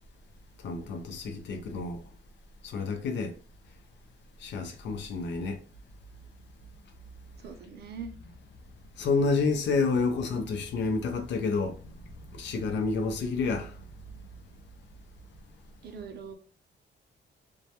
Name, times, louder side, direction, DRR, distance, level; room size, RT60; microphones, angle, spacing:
voice 1, 0.6-2.0 2.6-3.4 4.4-5.6 9.0-11.9 12.3-13.8, left 4 dB, 80° left, 0.5 m, -29 dB
voice 2, 7.4-8.1 15.8-16.3, right 5 dB, 65° right, 0.5 m, -41 dB
2.2 x 2.1 x 2.8 m
wide cardioid pair, 165°, 18 cm